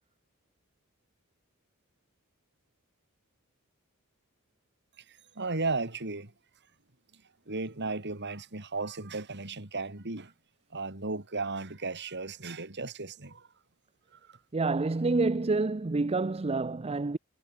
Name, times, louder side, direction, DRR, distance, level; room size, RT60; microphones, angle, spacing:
voice 1, 5.1-6.3 7.5-10.3 10.7-13.5, right 3 dB, 50° right, 3.0 m, -35 dB
voice 2, 14.5-17.2, right 3 dB, 30° right, 0.5 m, -28 dB
head